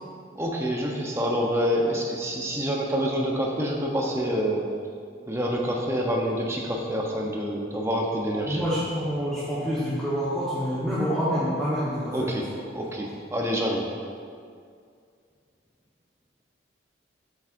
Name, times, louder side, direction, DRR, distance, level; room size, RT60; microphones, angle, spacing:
voice 1, 0.3-4.7 5.3-8.6 12.1-12.5 12.7-14.0, equal, 15° right, -1 dB, 0.7 m, -27 dB
voice 2, 8.5-12.3, equal, 5° left, -12 dB, 1.1 m, -27 dB
7.8 x 7.2 x 2.6 m, 2.2 s
head